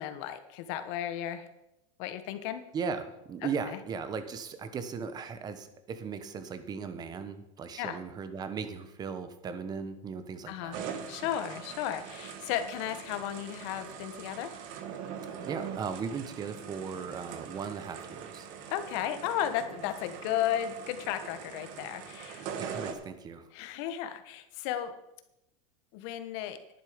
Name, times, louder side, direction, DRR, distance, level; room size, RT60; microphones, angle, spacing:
voice 1, 0.0-1.5 2.0-2.6 3.4-3.8 7.8-8.0 10.5-10.8 11.1-14.6 18.7-22.5 23.5-24.9 25.9-26.6, left 11 dB, 55° left, 10 dB, 1.3 m, -34 dB
voice 2, 2.7-10.8 15.4-18.5 22.6-23.5, right 6 dB, 25° right, 10 dB, 1.1 m, -37 dB
sound 1, 10.7-22.9, right 7 dB, 50° right, 1.5 m, -42 dB
11.0 x 10.0 x 5.1 m, 0.89 s
supercardioid pair, 145°, 17 cm